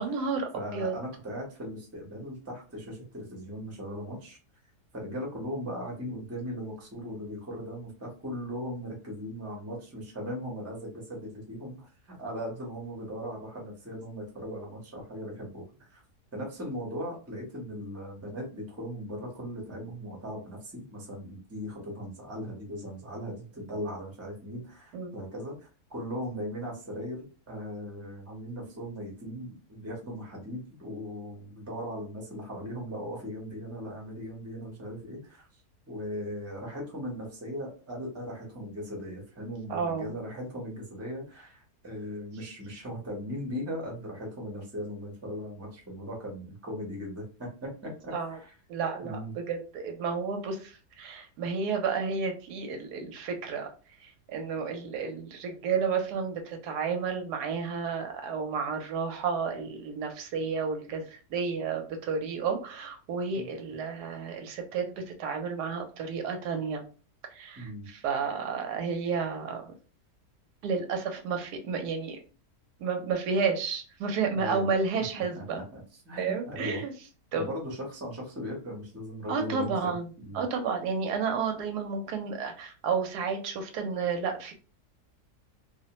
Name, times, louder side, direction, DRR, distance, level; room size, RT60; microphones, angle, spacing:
voice 1, 0.0-0.9 24.9-25.1 39.7-40.1 48.1-48.4 48.7-53.7 54.0-66.8 67.3-69.7 70.6-72.2 72.8-75.6 76.2-76.9 77.3-77.5 79.3-84.5, right 5 dB, 90° right, 5 dB, 1.2 m, -31 dB
voice 2, 0.5-4.4 4.9-15.6 15.9-16.0 16.3-35.6 35.9-48.5 49.0-49.3 63.3-63.5 67.6-67.9 74.3-74.7 75.4-76.8 77.3-79.7 80.2-80.4, equal, 15° right, -1 dB, 0.6 m, -38 dB
2.7 x 2.1 x 2.9 m, 0.35 s
omnidirectional pair, 1.7 m